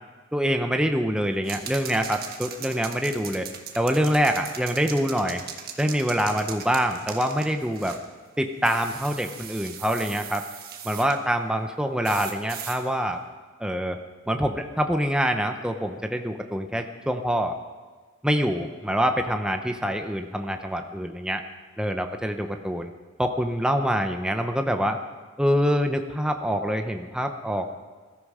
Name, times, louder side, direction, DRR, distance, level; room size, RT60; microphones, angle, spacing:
voice 1, 0.3-3.5 3.7-5.4 5.8-8.0 8.4-10.4 10.8-13.2 13.6-14.0 14.3-17.6 18.2-21.4 21.8-22.9 23.2-25.0 25.4-27.7, equal, 5° right, 5 dB, 0.7 m, -25 dB
sound 1, 1.4-8.1 8.6-11.2 12.0-12.8, right 8 dB, 45° right, 1.4 m, -39 dB
21.0 x 13.5 x 4.9 m, 1.4 s
head